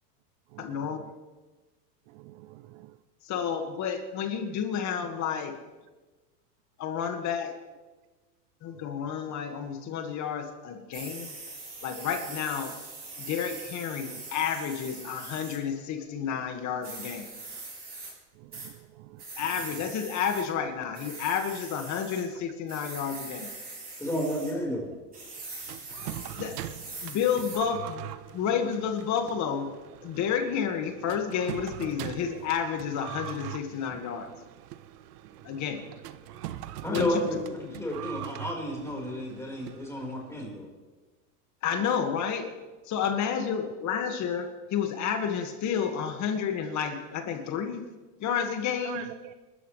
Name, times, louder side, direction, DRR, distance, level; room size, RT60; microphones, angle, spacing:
voice 1, 0.6-1.0 3.3-5.5 6.8-7.5 8.6-11.3 11.8-12.8 13.2-17.3 19.4-23.5 26.4-26.5 27.0-29.7 30.0-34.3 35.4-35.8 36.9-37.2 37.6-37.8 41.6-42.5 42.9-47.9 48.2-49.1, left 7 dB, 35° left, 5 dB, 2.0 m, -30 dB
voice 2, 2.1-2.9 18.5-19.2 48.8-49.3, right 14 dB, 50° right, 12 dB, 0.7 m, -45 dB
sound 1, 10.9-15.6 16.8-18.1 18.5-18.7 19.2-20.4 20.9-22.2 22.7-24.5 25.1-27.6, right 3 dB, 20° right, 6.5 m, -42 dB
voice 3, 24.0-24.9 36.8-37.3 37.7-40.7, equal, 5° left, -2 dB, 4.9 m, -31 dB
sound 2, 25.7-40.4, right 13 dB, 70° right, 1.1 m, -42 dB
28.0 x 13.5 x 3.4 m, 1.2 s
supercardioid pair, 130°, 49 cm